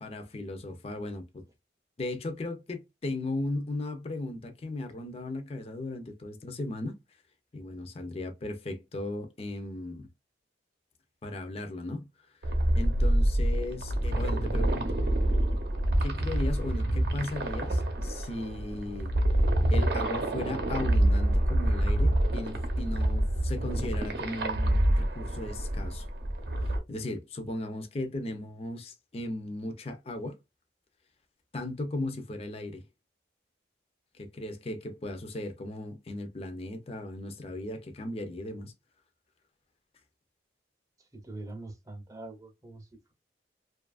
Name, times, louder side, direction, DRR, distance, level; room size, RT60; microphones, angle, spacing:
voice 1, 0.0-1.5 2.0-6.9 7.5-10.1 11.2-12.1 12.4-15.0 16.0-26.1 26.6-30.4 31.5-32.8 34.2-38.7, left 2 dB, 35° left, 0.5 m, -37 dB
sound 1, 12.4-26.8, right 1 dB, 65° right, 0.7 m, -27 dB
voice 2, 41.1-42.9, right 2 dB, 20° right, 0.6 m, -43 dB
2.7 x 2.4 x 2.3 m
head